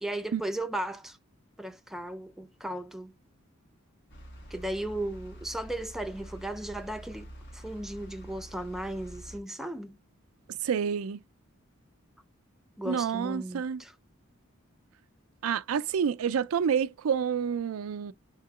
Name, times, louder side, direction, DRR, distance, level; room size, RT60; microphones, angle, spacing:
voice 1, 0.0-1.2 1.6-3.1 4.5-10.0 12.8-13.9, right 1 dB, ahead, 0.4 m, -36 dB
sound 1, 4.1-9.4, equal, 55° left, 1.3 m, -46 dB
voice 2, 10.6-11.2 12.8-13.8 15.4-18.1, right 7 dB, 80° right, 0.4 m, -28 dB
3.7 x 2.9 x 4.8 m
head